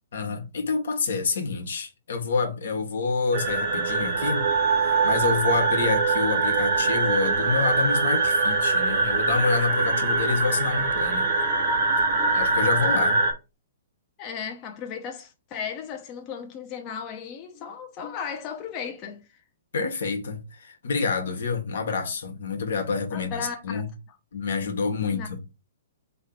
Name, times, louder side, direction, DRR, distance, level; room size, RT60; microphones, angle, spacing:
voice 1, 0.1-4.4 4.8-11.3 12.3-13.2 19.7-23.9 24.3-25.4, left 4 dB, 75° left, 1.2 m, -28 dB
sound 1, 3.3-13.3, right 3 dB, 55° right, 1.4 m, -23 dB
voice 2, 14.2-19.4 23.1-23.8 25.0-25.3, left 7 dB, 35° left, 0.8 m, -36 dB
3.7 x 3.1 x 4.4 m
hypercardioid pair, 130°, 0 cm